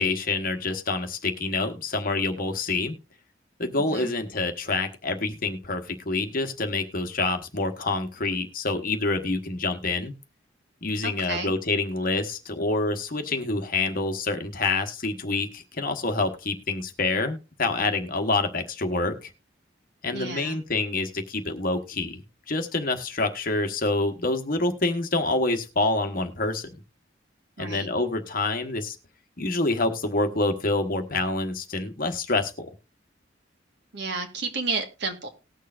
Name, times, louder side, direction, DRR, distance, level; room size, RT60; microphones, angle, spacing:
voice 1, 0.0-3.0 3.6-10.1 10.8-19.3 20.0-26.7 27.6-29.0 29.4-32.7, left 3 dB, 50° left, 7 dB, 1.2 m, -27 dB
voice 2, 11.0-11.5 20.1-20.6 27.6-27.9 33.9-35.3, right 3 dB, 65° right, 5 dB, 1.6 m, -31 dB
19.0 x 6.6 x 2.5 m, 0.31 s
head